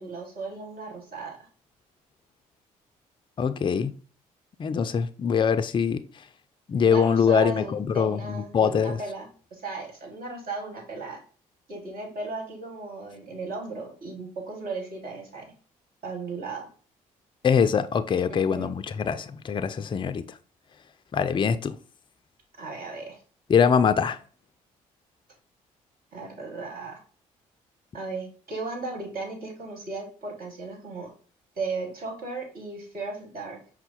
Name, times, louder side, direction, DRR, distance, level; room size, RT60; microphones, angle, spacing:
voice 1, 0.0-1.4 6.8-11.2 11.7-15.5 16.0-16.7 18.3-18.7 22.6-23.2 26.1-27.0 27.9-31.1 31.6-33.6, right 3 dB, 55° right, 1.9 m, -36 dB
voice 2, 3.4-3.9 4.6-6.0 6.7-9.0 17.4-20.2 21.1-21.8 23.5-24.2, left 6 dB, 30° left, 0.4 m, -23 dB
5.4 x 2.1 x 4.2 m
hypercardioid pair, 50°, 18 cm